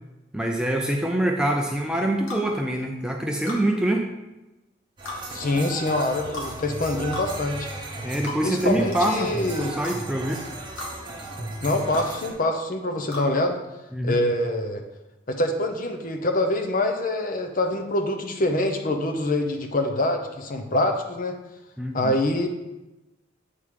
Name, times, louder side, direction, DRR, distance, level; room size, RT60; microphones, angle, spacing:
voice 1, 0.3-4.1 8.0-10.4 13.9-14.2 21.8-22.1, right 1 dB, 5° right, 1 dB, 0.4 m, -25 dB
sound 1, 2.3-2.5 3.5-3.6 5.1-5.2 6.3-6.5 7.1-7.3 8.2-8.4 8.9-9.1 9.8-10.0 10.8-10.9 11.9-12.1 13.1-13.3, left 2 dB, 70° left, 1.7 m, -34 dB
sound 2, 5.0-12.3, right 2 dB, 20° right, 1.0 m, -35 dB
voice 2, 5.3-7.7 8.4-9.7 11.6-13.6 14.0-14.8 15.3-21.4 21.9-22.5, left 1 dB, 40° left, 5 dB, 0.7 m, -25 dB
8.2 x 3.7 x 4.8 m, 1.0 s
head